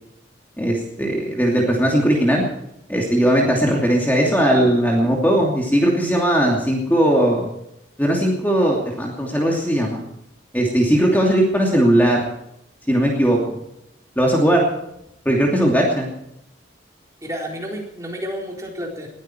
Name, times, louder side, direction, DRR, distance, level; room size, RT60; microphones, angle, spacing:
voice 1, 0.6-2.4 2.9-7.5 8.0-10.0 10.5-12.2 12.9-13.6 14.2-14.6 15.2-16.1, right 1 dB, 10° left, -1 dB, 2.7 m, -18 dB
voice 2, 17.2-19.1, equal, 15° right, 0 dB, 4.1 m, -30 dB
20.5 x 14.5 x 4.6 m, 0.81 s
head